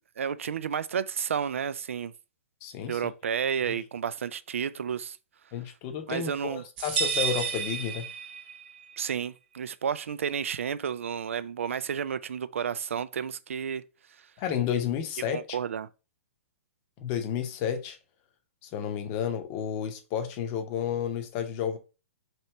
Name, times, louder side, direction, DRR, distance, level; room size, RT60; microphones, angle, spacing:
voice 1, 0.2-2.1 2.9-5.2 6.1-6.6 9.0-13.9 15.3-15.9, right 7 dB, 70° right, 0.3 m, -31 dB
voice 2, 2.6-3.0 5.5-8.1 14.4-15.6 17.0-18.0 18.6-21.8, left 8 dB, 35° left, 0.7 m, -31 dB
sound 1, 6.8-8.7, right 7 dB, 45° right, 0.8 m, -30 dB
3.1 x 2.9 x 4.3 m
figure-of-eight pair, 120°, 7 cm